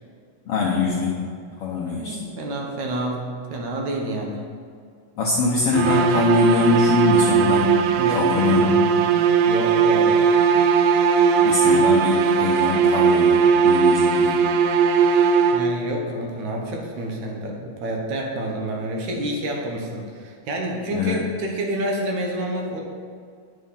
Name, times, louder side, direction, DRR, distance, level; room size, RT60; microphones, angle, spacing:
voice 1, 0.4-2.2 5.2-7.8 8.1-8.7 11.4-14.4 20.9-21.2, left 4 dB, 75° left, -3 dB, 1.4 m, -23 dB
voice 2, 1.9-4.4 5.4-5.6 8.0-9.1 9.4-10.2 15.5-22.8, right 1 dB, 70° right, 0 dB, 2.3 m, -28 dB
sound 1, 5.7-16.0, right 6 dB, 85° right, 2.1 m, -18 dB
9.4 x 6.3 x 5.6 m, 2.2 s
omnidirectional pair, 3.8 m